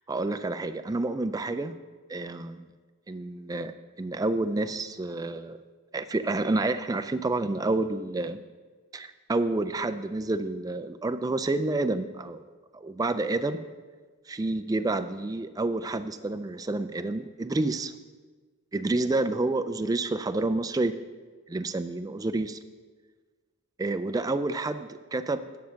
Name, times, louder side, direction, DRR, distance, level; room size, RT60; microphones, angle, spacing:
voice 1, 0.1-1.7 2.1-2.6 3.1-3.7 4.0-5.6 5.9-8.4 8.9-12.4 12.7-13.6 14.3-17.9 18.7-20.9 21.5-22.6 23.8-25.4, right 2 dB, 15° right, 11 dB, 0.3 m, -29 dB
9.4 x 6.3 x 5.7 m, 1.4 s
head